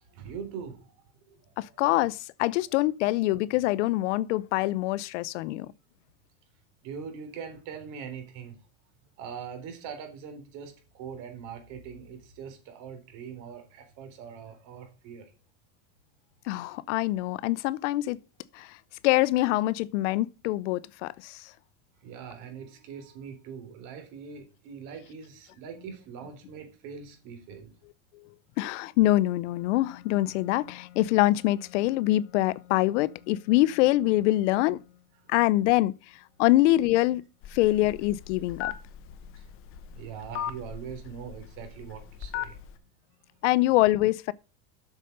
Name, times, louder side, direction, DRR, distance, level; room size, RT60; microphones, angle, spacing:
voice 1, 0.1-0.9 1.3-1.8 6.8-8.6 9.2-15.3 22.0-27.7 39.4-39.5 39.9-42.6, right 7 dB, 55° right, 3.9 m, -42 dB
voice 2, 1.6-5.7 16.5-18.2 18.5-18.8 19.0-21.4 28.1-28.2 28.6-34.8 35.3-35.9 36.4-37.2 37.5-38.7 43.4-44.3, left 17 dB, 75° left, 0.7 m, -24 dB
Telephone, 37.4-42.8, left 10 dB, 35° left, 1.0 m, -38 dB
8.2 x 6.7 x 6.6 m
supercardioid pair, 150°, 36 cm